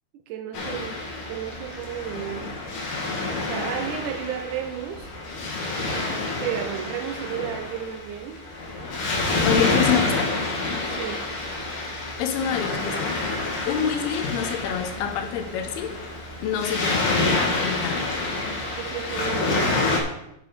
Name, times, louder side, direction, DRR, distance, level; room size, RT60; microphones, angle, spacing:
voice 1, 0.3-1.0 1.3-2.5 3.4-5.1 6.4-8.4 10.8-11.3 18.8-19.9, right 9 dB, 80° right, 1.8 m, -32 dB
Waves surf, 0.5-20.0, left 2 dB, 60° left, 3.0 m, -28 dB
voice 2, 9.4-10.3 12.2-13.1 13.7-15.9 16.4-18.0, left 8 dB, 80° left, 2.9 m, -27 dB
8.6 x 6.8 x 5.2 m
omnidirectional pair, 4.5 m